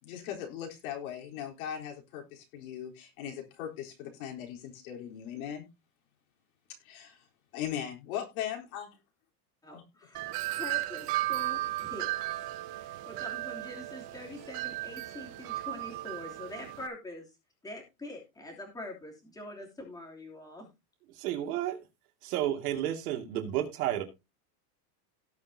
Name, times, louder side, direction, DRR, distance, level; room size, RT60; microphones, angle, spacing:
voice 1, 0.0-5.6 6.8-7.2 7.5-8.9 9.7-9.8, left 10 dB, 65° left, 4.0 m, -39 dB
voice 2, 9.6-12.1 12.3-17.3 17.6-20.7, left 1 dB, 10° left, 3.0 m, -44 dB
Wind chime, 10.1-16.9, right 17 dB, 30° right, 0.7 m, -35 dB
voice 3, 21.2-21.8 22.2-24.0, right 12 dB, 70° right, 2.5 m, -31 dB
18.0 x 6.5 x 2.8 m
supercardioid pair, 170°, 46 cm